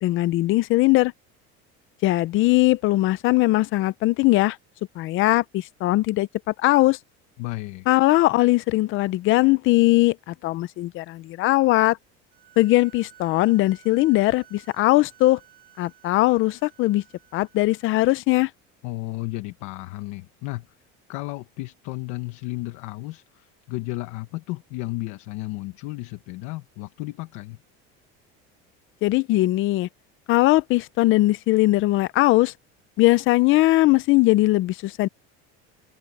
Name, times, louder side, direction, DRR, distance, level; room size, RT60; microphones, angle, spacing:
voice 1, 0.0-1.1 2.0-4.6 5.0-7.0 7.9-12.0 12.6-15.4 15.8-17.0 17.3-18.5 29.0-29.9 30.3-32.5 33.0-35.1, left 18 dB, 45° left, 0.6 m, -20 dB
voice 2, 7.4-7.9 18.8-20.7 21.1-27.6, left 20 dB, 70° left, 1.3 m, -33 dB
sound 1, 12.3-18.0, right 11 dB, 30° right, 4.6 m, -54 dB
cardioid pair, 170°, 29 cm